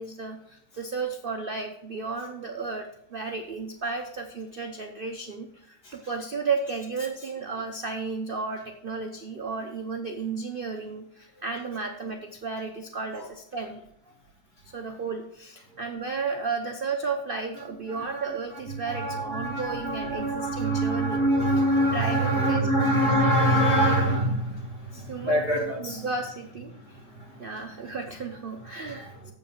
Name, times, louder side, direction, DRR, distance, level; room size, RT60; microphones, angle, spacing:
voice 1, 0.0-13.8 14.6-21.2 21.9-22.7 25.1-25.5 25.8-27.0 27.4-29.3, right 4 dB, 50° right, 4 dB, 0.6 m, -33 dB
voice 2, 17.9-18.3 18.7-26.0 26.7-27.5 28.7-29.1, right 1 dB, 60° left, 0 dB, 2.9 m, -25 dB
7.7 x 7.6 x 5.7 m, 0.72 s
omnidirectional pair, 2.0 m